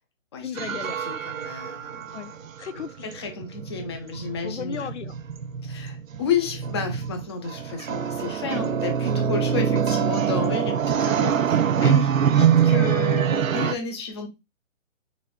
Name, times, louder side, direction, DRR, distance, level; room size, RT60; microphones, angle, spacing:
voice 1, 0.4-1.0 2.1-2.3 2.6-3.0 4.4-5.2 13.3-13.4, left 7 dB, 60° left, 0.7 m, -35 dB
sound 1, 0.6-13.7, right 8 dB, 80° right, 0.6 m, -24 dB
voice 2, 1.1-2.2 3.0-4.9 5.6-14.3, left 6 dB, 20° left, 0.6 m, -31 dB
4.0 x 3.8 x 2.2 m
figure-of-eight pair, 140°, 39 cm